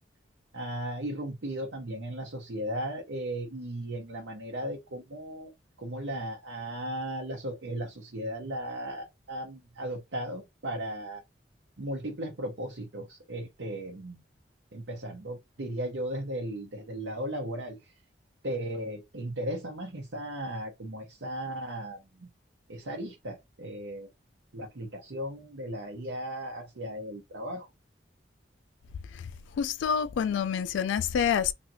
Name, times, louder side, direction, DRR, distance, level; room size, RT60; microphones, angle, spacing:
voice 1, 0.5-5.5 5.8-11.2 11.8-14.2 14.7-17.9 18.4-22.3 22.7-24.1 24.5-27.7, right 1 dB, 85° right, 0.8 m, -36 dB
voice 2, 29.6-31.5, left 7 dB, 85° left, 0.3 m, -27 dB
3.2 x 2.7 x 2.7 m
head